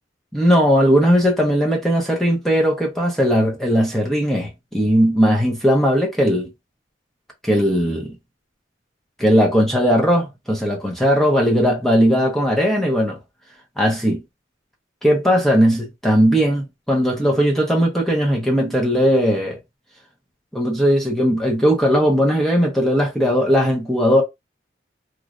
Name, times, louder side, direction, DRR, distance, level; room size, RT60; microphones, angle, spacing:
voice 1, 0.3-6.5 7.4-8.1 9.2-13.2 13.8-14.2 15.0-19.6 20.5-24.2, equal, ahead, 0.7 m, -18 dB
3.1 x 2.3 x 2.5 m
head